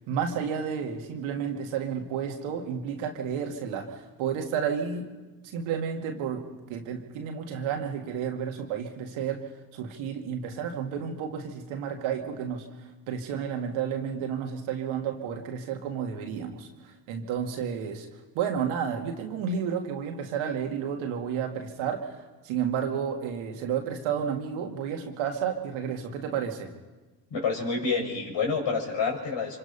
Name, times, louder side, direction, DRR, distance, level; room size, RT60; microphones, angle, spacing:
voice 1, 0.1-5.1 5.4-9.5 9.7-18.1 18.3-26.7, right 7 dB, 75° right, 3 dB, 2.4 m, -31 dB
voice 2, 27.3-29.6, left 4 dB, 60° left, 1 dB, 6.1 m, -28 dB
25.5 x 25.0 x 5.6 m, 1.2 s
hypercardioid pair, 45°, 49 cm